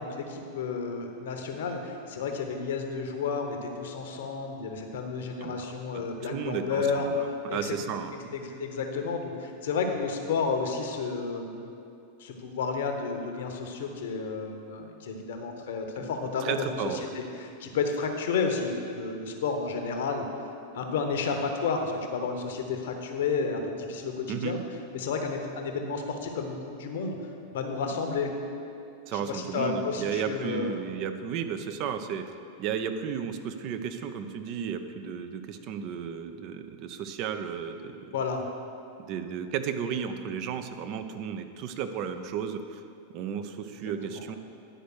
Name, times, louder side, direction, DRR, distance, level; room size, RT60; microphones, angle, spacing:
voice 1, 0.0-7.1 7.5-7.7 8.3-11.7 12.2-20.3 20.7-24.6 24.9-27.2 27.5-28.4 29.1-30.8 38.1-38.4 43.8-44.2, left 5 dB, 60° left, 4 dB, 1.0 m, -31 dB
voice 2, 5.9-8.3 16.0-16.1 16.4-17.1 24.3-24.5 29.1-32.2 32.6-38.2 39.1-42.8 43.1-44.4, right 7 dB, 40° right, 8 dB, 0.6 m, -34 dB
10.0 x 5.1 x 6.3 m, 2.6 s
figure-of-eight pair, 90°, 0 cm